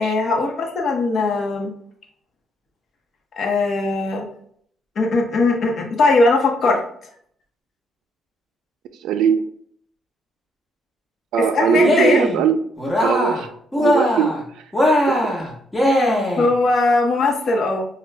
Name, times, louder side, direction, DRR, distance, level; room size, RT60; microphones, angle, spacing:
voice 1, 0.0-1.7 3.3-4.2 5.0-6.8 11.5-12.2 16.4-17.9, left 3 dB, 55° left, 1 dB, 0.9 m, -19 dB
voice 2, 9.0-9.4 11.3-12.6 13.0-13.5 13.8-14.7 15.1-15.4, right 7 dB, 85° right, 10 dB, 0.3 m, -20 dB
Cheering, 11.7-12.4 12.8-13.5 13.7-14.4 14.7-16.5, left 1 dB, 10° left, 1.2 m, -19 dB
6.0 x 2.3 x 2.2 m, 0.64 s
cardioid pair, 90°, 0 cm